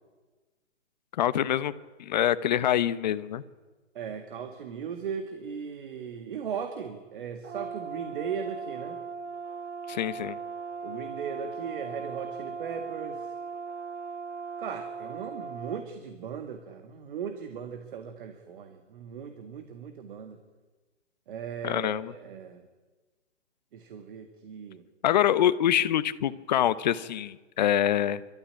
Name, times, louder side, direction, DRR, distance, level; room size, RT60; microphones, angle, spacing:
voice 1, 1.2-1.7 2.0-3.4 9.9-10.4 21.6-22.1 25.0-28.2, left 11 dB, 35° left, 15 dB, 0.9 m, -25 dB
voice 2, 3.9-9.0 10.8-13.3 14.6-20.4 21.3-22.6 23.7-24.8, right 7 dB, 45° right, 7 dB, 1.9 m, -38 dB
Brass instrument, 7.4-15.9, right 5 dB, 75° right, 1.2 m, -38 dB
28.5 x 13.5 x 10.0 m, 1.3 s
hypercardioid pair, 150°, 36 cm